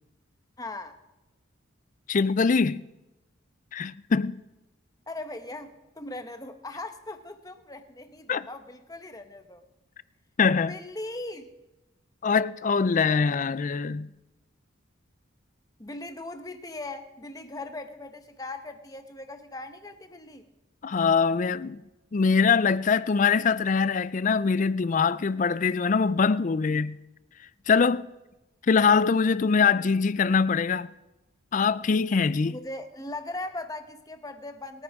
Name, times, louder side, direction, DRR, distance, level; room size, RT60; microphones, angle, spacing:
voice 1, 0.6-1.0 5.1-9.6 10.7-11.5 15.8-20.5 32.4-34.8, left 2 dB, 20° left, 1.0 m, -39 dB
voice 2, 2.1-2.8 3.7-4.4 8.3-8.5 10.4-10.7 12.2-14.1 20.8-21.8 22.1-27.0 27.7-28.1 28.7-30.9 31.5-32.6, left 5 dB, 40° left, 0.4 m, -23 dB
28.0 x 9.7 x 3.6 m
head